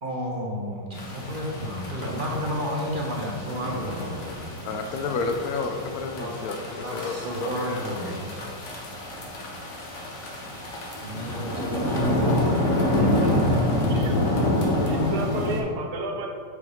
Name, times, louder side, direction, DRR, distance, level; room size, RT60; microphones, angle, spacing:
voice 1, 0.0-4.4 6.1-8.6 11.0-12.4, equal, 40° right, -2 dB, 0.7 m, -32 dB
sound 1, 0.9-15.6, left 1 dB, 45° left, 1.2 m, -27 dB
voice 2, 4.6-8.1, left 4 dB, 70° left, 5 dB, 0.9 m, -31 dB
voice 3, 14.8-16.3, right 1 dB, 65° right, 2 dB, 1.4 m, -32 dB
8.1 x 5.1 x 3.6 m, 2.3 s
omnidirectional pair, 2.0 m